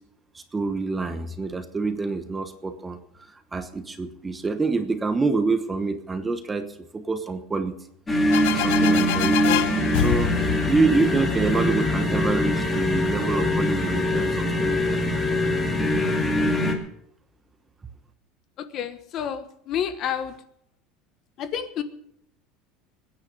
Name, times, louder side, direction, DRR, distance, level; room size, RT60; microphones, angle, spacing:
voice 1, 0.3-3.0 3.3-7.7 8.5-15.1, right 3 dB, 10° right, 8 dB, 1.1 m, -27 dB
sound 1, 8.1-16.7, left 1 dB, 15° left, 2.4 m, -23 dB
sound 2, 8.3-11.9, left 14 dB, 75° left, 0.6 m, -27 dB
voice 2, 18.6-20.3 21.4-21.8, left 8 dB, 35° left, 11 dB, 1.2 m, -29 dB
22.0 x 9.8 x 5.4 m, 0.72 s
cardioid pair, 165°, 0 cm